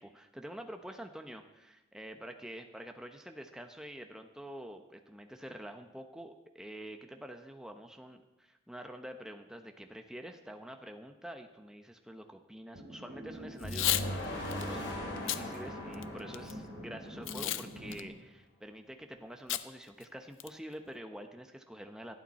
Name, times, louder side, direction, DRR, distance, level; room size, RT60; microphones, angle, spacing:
voice 1, 0.0-22.1, equal, 5° right, 5 dB, 0.9 m, -47 dB
sound 1, 12.7-18.1, equal, 75° right, 5.0 m, -46 dB
Packing tape duct tape / Tearing, 13.6-14.1 14.5-14.6 15.2-15.4 15.9-16.5 17.3-17.6 17.9-18.0 19.5-19.6 20.0-20.1 20.4-20.7, left 13 dB, 75° left, 0.6 m, -32 dB
sound 2, 13.6-17.7, left 1 dB, 60° left, 3.4 m, -40 dB
26.0 x 9.1 x 4.3 m, 1.0 s
head